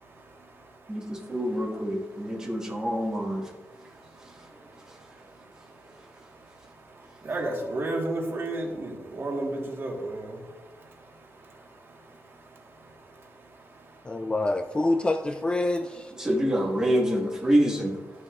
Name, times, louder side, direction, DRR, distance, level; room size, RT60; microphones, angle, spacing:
voice 1, 0.2-0.5 1.1-1.3 2.2-2.5 3.4-13.7, right 2 dB, 45° right, 0 dB, 1.4 m, -36 dB
voice 2, 0.9-3.5 4.2-4.4 4.9-5.0 16.1-17.9, equal, 10° right, -3 dB, 1.6 m, -26 dB
voice 3, 14.1-16.1, left 2 dB, 15° left, 7 dB, 0.3 m, -26 dB
13.0 x 6.6 x 2.4 m, 1.2 s
wide cardioid pair, 180°, 6 cm